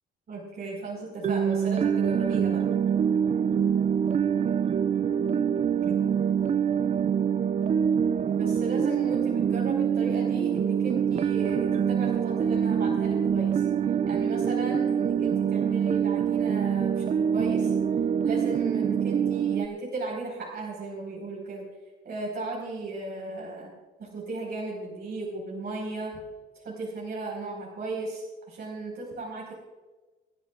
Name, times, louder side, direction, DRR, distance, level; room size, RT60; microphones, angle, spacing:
voice 1, 0.3-2.6 8.3-13.7 14.1-17.7 18.2-21.6 22.0-23.7 24.0-26.1 26.6-29.5, right 2 dB, 55° right, -3 dB, 5.2 m, -36 dB
sound 1, 1.2-19.7, right 8 dB, 35° right, 0.4 m, -25 dB
28.5 x 10.5 x 2.6 m, 1.2 s
cardioid pair, 90°, 20 cm